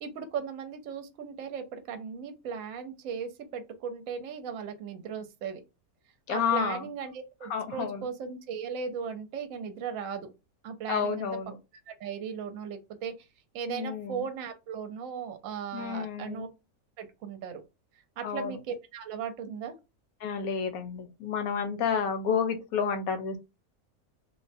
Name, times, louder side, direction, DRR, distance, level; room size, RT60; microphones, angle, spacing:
voice 1, 0.0-5.6 6.3-10.3 10.6-11.3 11.9-13.3 13.5-16.5 17.0-17.6 18.2-19.7, right 6 dB, 70° right, 0.9 m, -37 dB
voice 2, 6.3-6.8 7.5-8.0 10.9-11.6 13.7-14.2 15.7-16.5 18.2-18.5 20.2-23.4, left 6 dB, 75° left, 1.0 m, -30 dB
3.3 x 2.1 x 2.6 m
omnidirectional pair, 1.6 m